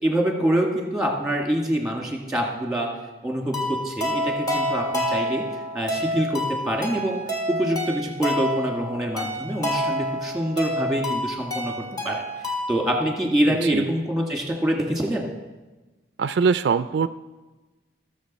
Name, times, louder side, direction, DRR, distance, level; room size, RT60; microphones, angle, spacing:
voice 1, 0.0-2.9 3.2-5.4 5.7-7.2 7.5-12.2 12.7-15.4, right 1 dB, 5° right, 1 dB, 1.8 m, -25 dB
sound 1, 3.5-12.9, equal, 20° left, 2.0 m, -28 dB
voice 2, 13.5-13.9 16.2-17.1, right 5 dB, 65° right, 12 dB, 0.3 m, -22 dB
20.0 x 6.8 x 4.2 m, 1.2 s
head